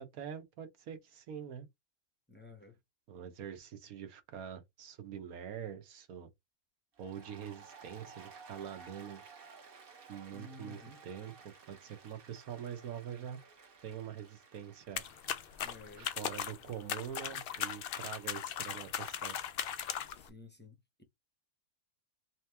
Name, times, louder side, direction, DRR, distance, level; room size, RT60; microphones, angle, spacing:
voice 1, 0.0-1.7 3.1-6.3 7.0-9.2 10.1-13.4 13.8-15.0 15.9-19.4, right 8 dB, 75° right, 1.4 m, -45 dB
voice 2, 2.3-2.8 10.3-11.0 15.6-16.1 20.2-21.0, left 2 dB, 15° left, 0.4 m, -53 dB
Applause, 6.9-15.7, right 5 dB, 45° right, 1.1 m, -56 dB
sound 1, 15.0-20.3, left 9 dB, 85° left, 0.5 m, -38 dB
3.7 x 3.0 x 3.4 m
omnidirectional pair, 1.6 m